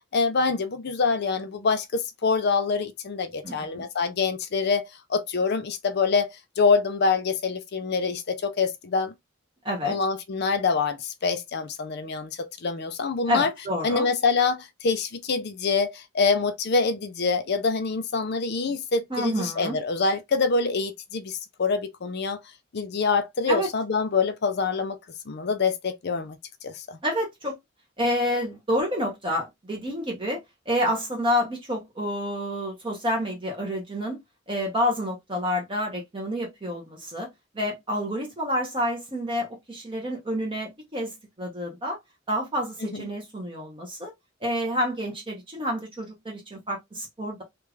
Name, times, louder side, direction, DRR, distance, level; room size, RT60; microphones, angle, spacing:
voice 1, 0.1-9.1 9.8-13.5 13.8-22.4 22.7-25.0 25.3-26.4 26.6-27.0 42.9-43.1, left 4 dB, 55° left, 0.5 m, -25 dB
voice 2, 3.4-3.9 9.6-9.9 13.3-14.1 19.1-19.8 23.5-23.7 27.0-27.5 28.0-30.4 30.7-34.2 34.5-37.3 37.5-42.0 42.3-44.1 44.4-47.4, equal, 25° right, 1.0 m, -28 dB
3.3 x 2.5 x 3.2 m
head